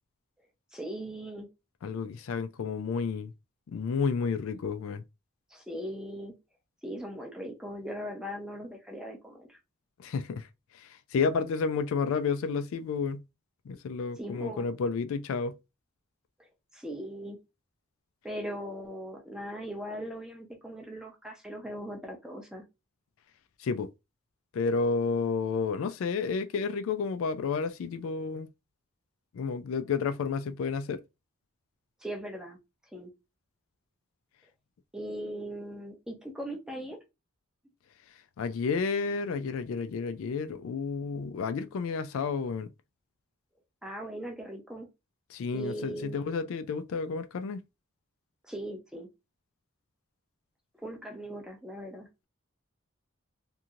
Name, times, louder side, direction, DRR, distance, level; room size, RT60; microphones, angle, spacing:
voice 1, 0.7-1.5 5.5-6.3 6.8-9.6 14.2-14.7 16.4-17.4 18.2-22.6 32.0-32.6 32.9-33.1 34.9-37.0 43.8-44.9 45.5-46.2 48.4-49.1 50.8-52.1, equal, 5° right, 0.6 m, -39 dB
voice 2, 1.8-3.3 3.7-5.0 10.0-10.5 10.7-13.2 13.7-15.6 23.6-23.9 24.5-28.5 29.3-31.0 38.4-42.7 45.3-47.6, left 5 dB, 70° left, 0.3 m, -31 dB
2.9 x 2.6 x 2.4 m
head